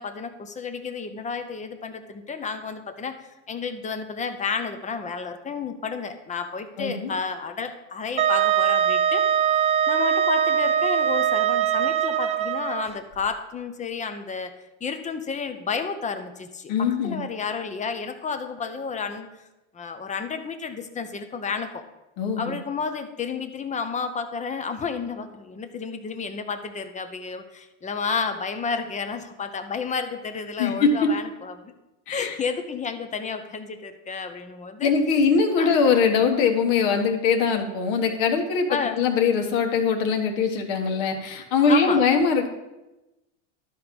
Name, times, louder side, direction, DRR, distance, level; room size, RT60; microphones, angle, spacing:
voice 1, 0.0-9.2 9.9-14.5 14.8-19.5 19.7-21.8 22.4-31.7 32.1-34.9 35.6-35.7 38.7-39.0 41.7-42.0, left 5 dB, 20° left, 8 dB, 0.8 m, -31 dB
voice 2, 6.8-7.1 16.7-17.2 22.2-22.6 30.6-31.1 32.1-32.4 34.8-42.5, left 5 dB, 60° left, 4 dB, 1.5 m, -22 dB
Wind instrument woodwind instrument, 8.2-12.9, right 9 dB, 20° right, 0.4 m, -22 dB
12.0 x 4.7 x 5.2 m, 1.0 s
supercardioid pair, 120°, 37 cm